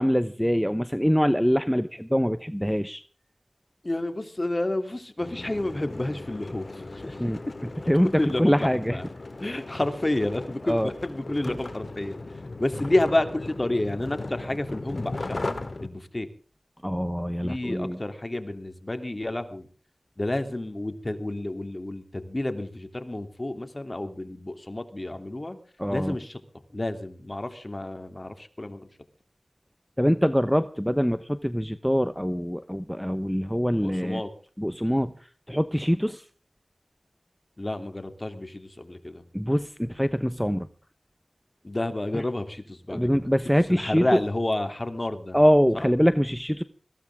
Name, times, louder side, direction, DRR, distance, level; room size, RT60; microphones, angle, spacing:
voice 1, 0.0-3.0 7.2-7.4 7.9-8.1 8.4-9.0 10.7-10.9 11.5-11.6 16.8-18.0 25.8-26.1 30.0-34.2 34.6-35.1 35.5-36.2 39.3-40.7 42.1-42.2 42.9-44.2 45.3-46.6, equal, ahead, 12 dB, 0.9 m, -24 dB
voice 2, 3.8-7.2 8.2-9.0 9.4-12.2 12.6-16.3 17.4-19.7 20.2-25.6 25.9-26.4 26.7-28.9 33.8-34.3 37.6-39.2 41.6-43.3 43.7-45.4 45.7-45.9, left 1 dB, 30° left, 8 dB, 3.0 m, -30 dB
sound 1, 5.2-15.9, left 2 dB, 55° left, 2.1 m, -37 dB
21.5 x 16.0 x 3.7 m, 0.41 s
wide cardioid pair, 55°, 0 cm